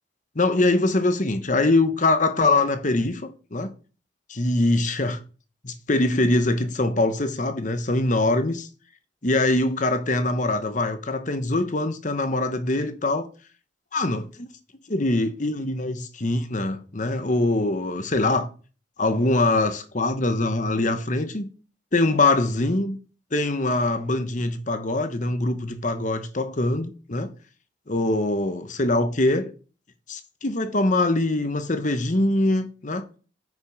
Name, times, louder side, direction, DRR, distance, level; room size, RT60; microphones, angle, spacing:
voice 1, 0.3-3.7 4.3-5.2 5.6-8.7 9.2-13.3 13.9-14.5 14.9-18.5 19.0-21.5 21.9-23.0 23.3-27.3 27.9-29.5 30.1-33.0, left 2 dB, 45° left, 1.0 m, -23 dB
9.6 x 6.1 x 5.3 m
head